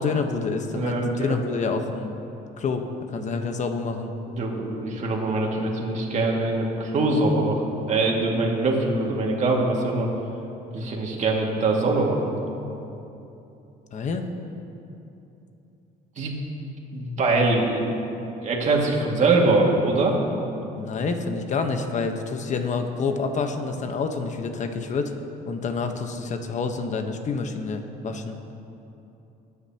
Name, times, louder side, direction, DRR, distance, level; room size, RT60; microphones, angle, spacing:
voice 1, 0.0-2.1 2.6-4.1 13.9-14.2 20.8-25.1 25.5-28.4, left 4 dB, 45° left, 6 dB, 1.1 m, -28 dB
voice 2, 0.7-1.4 4.3-10.1 10.7-12.3 16.2-16.3 16.9-17.9 18.4-20.2, right 2 dB, 45° right, -1 dB, 2.1 m, -23 dB
21.0 x 9.8 x 2.9 m, 2.9 s
cardioid pair, 110°, 17 cm